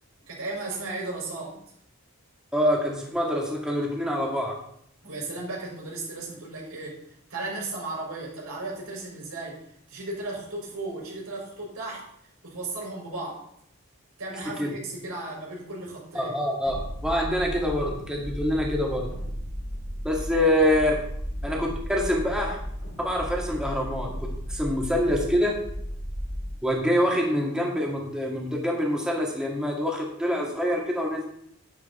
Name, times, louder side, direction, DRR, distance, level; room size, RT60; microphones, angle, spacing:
voice 1, 0.3-1.6 5.0-12.1 12.4-13.4 14.2-16.4 20.3-20.4, right 2 dB, 90° right, -3 dB, 5.7 m, -35 dB
voice 2, 2.5-4.6 14.6-14.7 16.1-19.1 20.0-21.0 21.4-22.6 23.0-25.6 26.6-31.2, equal, 5° right, -1 dB, 1.9 m, -25 dB
sound 1, 16.6-26.5, equal, 85° left, 3.8 m, -35 dB
11.0 x 10.5 x 4.3 m, 0.69 s
head